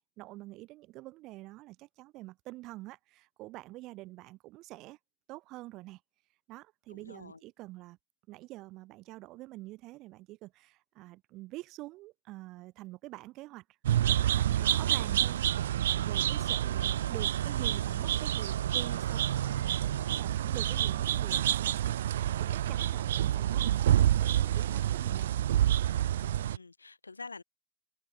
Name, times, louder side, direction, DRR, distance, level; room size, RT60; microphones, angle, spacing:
voice 1, 0.0-5.0 5.3-6.0 6.5-8.0 8.3-13.6 14.0-15.4 15.9-25.3, right 19 dB, 40° right, 1.7 m, -46 dB
voice 2, 6.9-7.4 26.2-27.4, left 4 dB, 80° left, 1.2 m, -47 dB
sound 1, 13.8-26.6, right 11 dB, 60° right, 0.7 m, -28 dB
open air
figure-of-eight pair, 90°, 0 cm